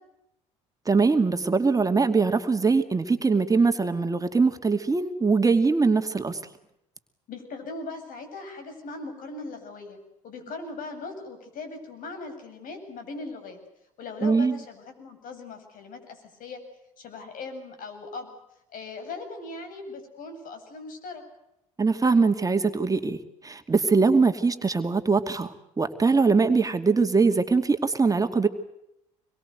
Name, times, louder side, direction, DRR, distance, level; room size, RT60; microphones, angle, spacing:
voice 1, 0.9-6.4 14.2-14.6 21.8-28.5, right 4 dB, 20° right, 7 dB, 2.4 m, -22 dB
voice 2, 7.3-10.0 10.2-13.6 14.0-16.6 17.0-18.3 18.7-21.2, left 3 dB, 55° left, 7 dB, 7.9 m, -39 dB
26.5 x 23.0 x 8.1 m, 0.83 s
hypercardioid pair, 60°, 17 cm